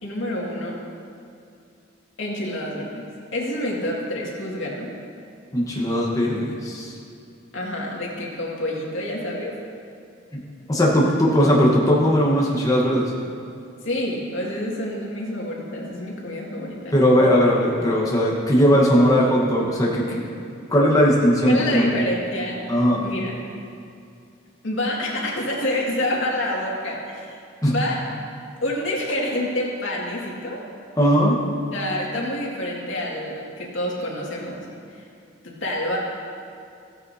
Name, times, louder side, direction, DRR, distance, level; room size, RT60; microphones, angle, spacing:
voice 1, 0.0-0.8 2.2-3.0 3.3-4.9 7.5-9.5 13.8-17.0 21.5-22.6 23.0-23.4 24.6-27.4 27.7-28.0 28.6-30.6 31.7-34.6 34.9-35.1 35.4-36.0, left 1 dB, 85° left, -3 dB, 2.1 m, -27 dB
voice 2, 5.5-6.9 10.3-10.4 10.7-13.1 16.9-20.2 20.7-21.9 22.7-23.0 27.6-27.7 31.0-31.4, equal, 20° left, -4 dB, 1.2 m, -18 dB
15.5 x 9.7 x 2.8 m, 2.5 s
head